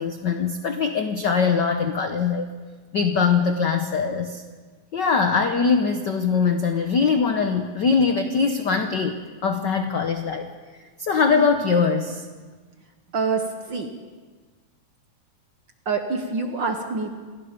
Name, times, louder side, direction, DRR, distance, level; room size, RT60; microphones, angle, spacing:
voice 1, 0.0-2.5 2.9-4.4 4.9-9.1 9.4-10.5 11.0-12.2, left 5 dB, 65° left, 6 dB, 1.1 m, -22 dB
voice 2, 13.1-13.9 15.8-17.1, right 4 dB, 50° right, 5 dB, 1.5 m, -26 dB
28.0 x 19.0 x 5.2 m, 1.5 s
omnidirectional pair, 3.4 m